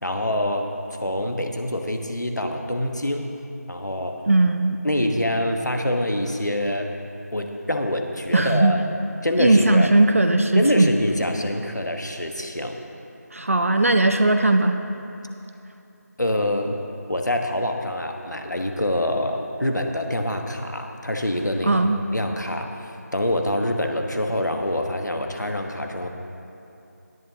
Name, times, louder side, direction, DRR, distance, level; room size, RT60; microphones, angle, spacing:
voice 1, 0.0-0.7 1.0-3.3 3.7-4.2 4.8-6.9 7.3-8.8 9.2-9.9 10.5-12.8 16.2-16.8 17.1-21.8 22.1-22.7 23.1-26.1, left 1 dB, 90° left, 4 dB, 1.3 m, -25 dB
voice 2, 4.3-4.8 8.3-8.8 9.4-10.9 13.3-14.8 21.6-22.0, right 2 dB, 50° right, 6 dB, 0.6 m, -18 dB
18.0 x 11.0 x 2.9 m, 2.8 s
figure-of-eight pair, 170°, 9 cm